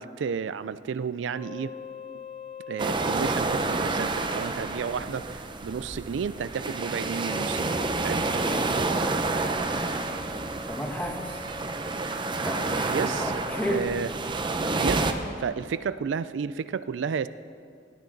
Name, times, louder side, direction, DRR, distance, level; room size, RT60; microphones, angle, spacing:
voice 1, 0.0-1.7 2.7-8.2 12.8-13.3 13.7-14.1 14.8-15.1 15.4-17.3, right 6 dB, 90° right, 15 dB, 0.4 m, -32 dB
sound 1, 1.3-3.4 7.2-12.6, left 3 dB, 45° left, 3.4 m, -43 dB
sound 2, 2.8-15.1, right 3 dB, 25° right, 0.6 m, -29 dB
voice 2, 10.7-11.3 12.3-13.8, equal, 10° left, 1 dB, 1.4 m, -32 dB
17.0 x 10.5 x 3.9 m, 2.3 s
head